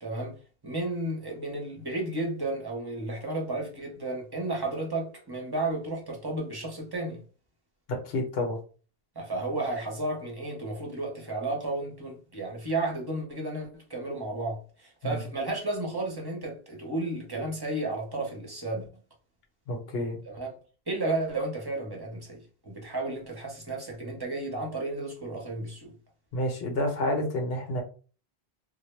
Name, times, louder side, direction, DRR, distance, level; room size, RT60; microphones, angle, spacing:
voice 1, 0.0-7.2 9.1-18.9 20.3-20.5 20.9-25.9, right 2 dB, 30° right, 0.6 m, -33 dB
voice 2, 8.0-8.6 15.0-15.2 19.7-20.2 26.3-27.8, left 1 dB, 70° left, 0.9 m, -29 dB
2.1 x 2.0 x 3.0 m
omnidirectional pair, 1.1 m